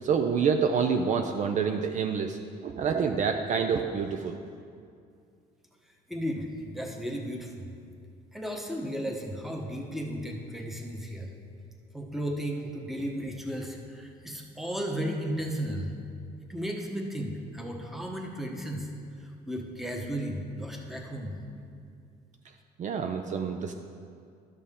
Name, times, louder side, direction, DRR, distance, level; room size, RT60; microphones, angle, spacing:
voice 1, 0.0-4.4 22.8-23.7, right 6 dB, 45° right, 5 dB, 0.5 m, -27 dB
voice 2, 6.1-7.7 8.3-11.3 11.9-15.9 16.5-18.9 19.2-21.4, equal, ahead, 1 dB, 1.1 m, -34 dB
12.0 x 6.3 x 3.7 m, 2.3 s
cardioid pair, 110°, 17 cm